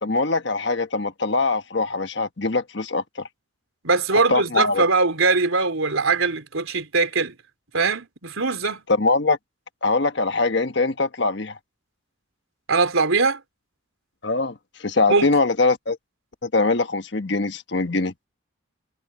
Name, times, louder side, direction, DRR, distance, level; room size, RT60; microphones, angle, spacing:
voice 1, 0.0-3.3 4.3-4.8 8.9-9.4 9.8-11.6 14.2-16.0 16.4-18.1, left 3 dB, 60° left, 1.3 m, -22 dB
voice 2, 3.8-7.4 7.7-8.8 12.7-13.4 15.1-15.3, right 4 dB, 85° right, 3.9 m, -21 dB
head